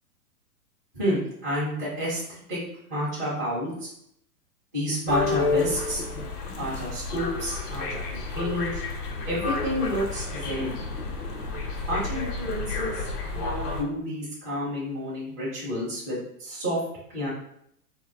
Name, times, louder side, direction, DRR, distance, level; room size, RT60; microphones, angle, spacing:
voice 1, 0.9-2.6 2.9-3.9 4.7-6.0 6.5-8.8 9.3-10.8 11.9-16.8 17.1-17.3, equal, 15° right, -11 dB, 0.3 m, -30 dB
sound 1, 5.1-13.8, left 4 dB, 75° left, 0.8 m, -31 dB
2.2 x 2.1 x 3.4 m, 0.72 s
hypercardioid pair, 145°, 46 cm